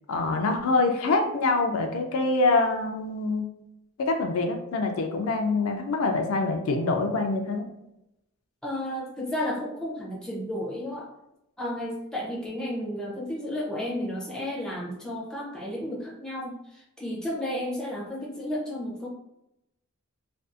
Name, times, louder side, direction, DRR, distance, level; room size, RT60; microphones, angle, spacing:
voice 1, 0.1-3.4 4.0-7.7, left 3 dB, 70° left, 4 dB, 0.4 m, -25 dB
voice 2, 8.6-11.1 11.6-19.1, left 1 dB, 5° left, -5 dB, 0.5 m, -32 dB
2.6 x 2.3 x 2.4 m, 0.86 s
head